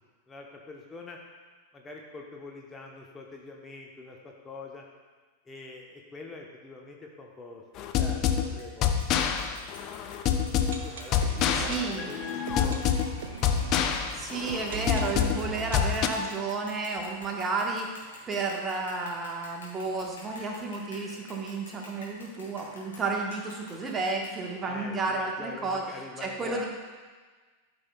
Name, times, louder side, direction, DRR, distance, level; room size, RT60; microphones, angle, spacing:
voice 1, 0.3-1.2 1.7-4.8 5.5-7.6 8.0-9.4 10.8-13.0 14.1-14.4 24.6-26.7, left 3 dB, 15° left, -1 dB, 0.8 m, -44 dB
sound 1, 7.8-16.1, left 8 dB, 35° left, 0.5 m, -27 dB
sound 2, 8.6-8.7 9.0-24.8, left 3 dB, 65° left, 2.3 m, -50 dB
sound 3, 10.2-18.0 18.3-18.4 18.5-18.6 19.2-19.3, right 5 dB, 60° right, 0.8 m, -42 dB
voice 2, 11.5-12.1 13.9-17.9 18.3-25.8 26.2-26.7, right 3 dB, 20° right, 1 dB, 1.1 m, -32 dB
13.0 x 5.5 x 2.2 m, 1.4 s
figure-of-eight pair, 90°, 0 cm